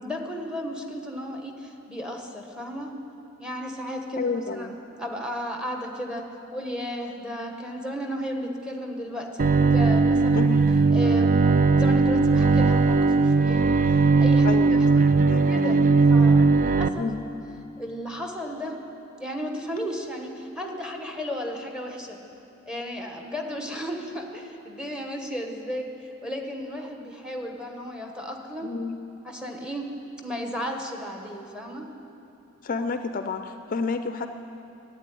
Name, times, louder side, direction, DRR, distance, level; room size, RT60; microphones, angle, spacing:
voice 1, 0.0-2.9 3.4-6.2 6.5-10.5 10.9-14.8 15.5-15.8 16.1-17.0 17.8-18.8 19.2-22.2 22.7-28.7 29.2-29.8 30.2-31.9, equal, 5° right, 2 dB, 1.2 m, -34 dB
voice 2, 4.2-4.8 10.3-10.6 14.4-15.4 16.9-17.2 28.6-29.0 32.6-34.3, left 4 dB, 40° left, 8 dB, 0.5 m, -30 dB
Bowed string instrument, 9.4-16.9, right 4 dB, 40° right, 0.3 m, -19 dB
12.0 x 8.5 x 10.0 m, 2.9 s
head